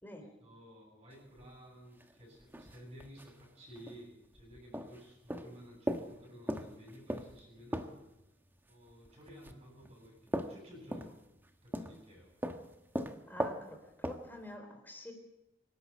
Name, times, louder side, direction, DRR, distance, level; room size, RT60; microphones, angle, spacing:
voice 1, 0.4-7.9 8.6-11.1 11.6-12.3, equal, 30° right, -3 dB, 8.0 m, -54 dB
sound 1, 1.1-1.5 2.0-2.1 2.4-3.4 3.7-4.0 4.3-5.0 5.3-8.1 8.9-11.5 11.7-12.1 12.4-14.4, equal, 10° right, 1.3 m, -39 dB
voice 2, 13.3-15.1, left 1 dB, 10° left, 4 dB, 3.8 m, -48 dB
25.5 x 12.0 x 9.3 m, 0.94 s
head